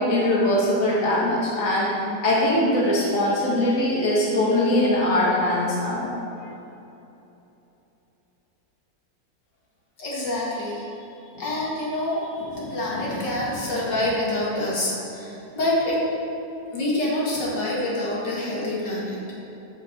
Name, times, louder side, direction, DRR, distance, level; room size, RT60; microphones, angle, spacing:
voice 1, 0.0-1.9 2.2-6.1, left 1 dB, 50° left, -6 dB, 2.3 m, -21 dB
voice 2, 10.0-16.0 16.7-19.2, left 1 dB, 75° left, -6 dB, 2.6 m, -27 dB
12.5 x 6.6 x 4.6 m, 2.9 s
omnidirectional pair, 1.9 m